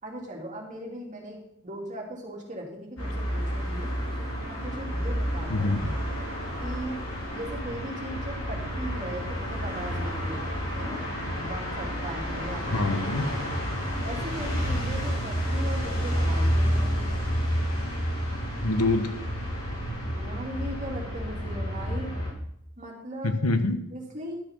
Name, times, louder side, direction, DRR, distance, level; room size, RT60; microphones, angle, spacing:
voice 1, 0.0-4.0 4.4-5.8 6.6-7.0 7.3-10.5 10.7-11.0 11.3-13.0 14.0-17.1 20.1-22.2 22.8-23.4 23.9-24.4, right 1 dB, 35° right, -1 dB, 2.8 m, -38 dB
sound 1, 3.0-22.3, equal, 65° left, 4.5 m, -30 dB
voice 2, 5.5-5.9 12.7-13.3 18.6-19.1 23.2-23.8, left 2 dB, 85° left, 9 dB, 1.1 m, -25 dB
12.0 x 6.8 x 5.9 m, 0.76 s
head